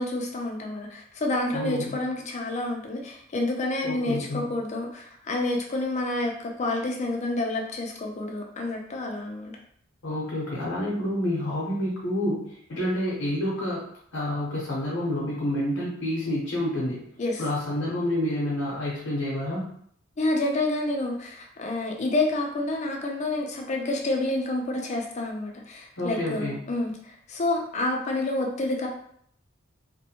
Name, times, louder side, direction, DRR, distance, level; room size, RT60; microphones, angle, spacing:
voice 1, 0.0-9.5 17.2-17.4 20.2-28.9, left 2 dB, 35° left, 1 dB, 0.4 m, -28 dB
voice 2, 1.5-2.0 3.8-4.5 10.0-13.8 14.1-17.0 17.4-19.7 26.0-26.6, left 1 dB, 80° left, -6 dB, 0.8 m, -28 dB
2.5 x 2.1 x 2.8 m, 0.66 s
head